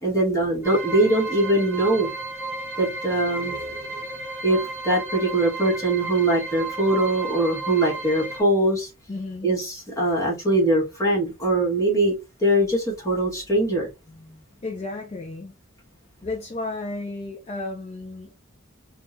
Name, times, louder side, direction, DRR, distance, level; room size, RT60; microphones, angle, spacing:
voice 1, 0.0-2.1 2.8-3.8 4.4-8.9 9.4-12.1 12.4-13.9, right 1 dB, 15° left, 1.4 m, -22 dB
sound 1, 0.6-8.4, right 3 dB, 15° right, 1.0 m, -33 dB
voice 2, 9.1-9.5 14.1-15.5 16.2-18.3, left 2 dB, 30° left, 0.4 m, -33 dB
3.6 x 2.3 x 2.5 m
head